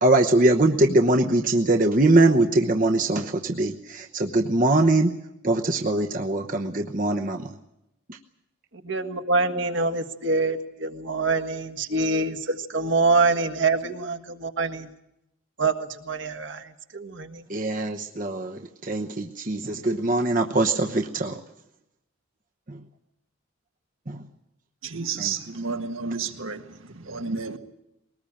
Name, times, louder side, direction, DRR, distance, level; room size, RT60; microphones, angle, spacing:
voice 1, 0.0-5.1 5.4-7.6 8.1-8.2 17.5-21.4 22.7-22.8 24.1-24.2 25.2-25.3, right 2 dB, 40° right, 1.0 m, -22 dB
voice 2, 8.8-14.9 15.6-17.4, right 3 dB, 65° right, 1.6 m, -25 dB
voice 3, 24.8-27.6, right 5 dB, 80° right, 1.7 m, -31 dB
21.5 x 19.0 x 8.8 m
head